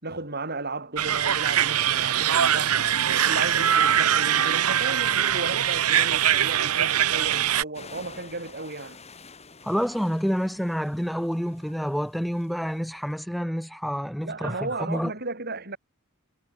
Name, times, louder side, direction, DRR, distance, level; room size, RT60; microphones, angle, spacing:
voice 1, 0.0-2.8 3.2-9.0 14.2-15.8, right 3 dB, 45° right, 6.6 m, -34 dB
sound 1, 1.0-7.6, right 10 dB, 80° right, 1.1 m, -22 dB
sound 2, 7.7-13.2, left 4 dB, 30° left, 6.6 m, -49 dB
voice 2, 9.6-15.1, equal, ahead, 0.5 m, -28 dB
head